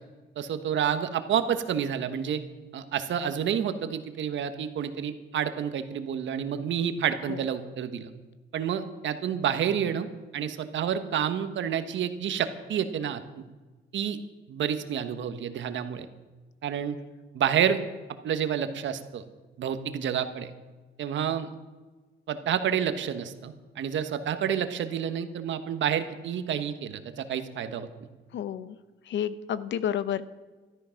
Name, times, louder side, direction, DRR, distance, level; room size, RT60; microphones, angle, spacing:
voice 1, 0.4-2.4 2.7-8.1 8.5-10.1 10.3-13.2 13.9-14.2 14.5-16.1 16.6-17.0 17.3-17.8 18.2-19.2 19.6-20.5 21.0-21.5 22.3-27.9, right 8 dB, 70° right, 9 dB, 1.3 m, -29 dB
voice 2, 28.3-28.8 29.1-30.2, left 9 dB, 65° left, 14 dB, 0.8 m, -30 dB
13.5 x 12.5 x 5.9 m, 1.3 s
cardioid pair, 90°, 20 cm